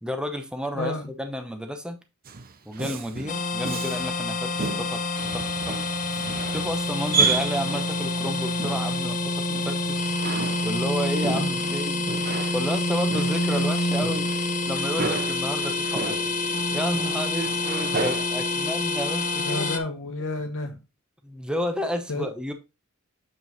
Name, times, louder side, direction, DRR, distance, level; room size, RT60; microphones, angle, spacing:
voice 1, 0.0-2.0 2.7-5.0 5.3-5.8 6.5-10.1 10.6-12.0 12.5-14.3 14.6-16.3 16.7-19.7 21.2-22.5, equal, 5° right, 0.8 m, -31 dB
Male speech man speaking, 2.3-4.2 4.6-8.0 8.6-9.0 9.5-18.3, right 4 dB, 40° right, 0.7 m, -32 dB
sound 1, 3.3-19.8, left 2 dB, 35° left, 0.8 m, -27 dB
voice 2, 19.4-20.8 22.1-22.2, left 2 dB, 60° left, 1.0 m, -30 dB
7.7 x 4.5 x 4.0 m
head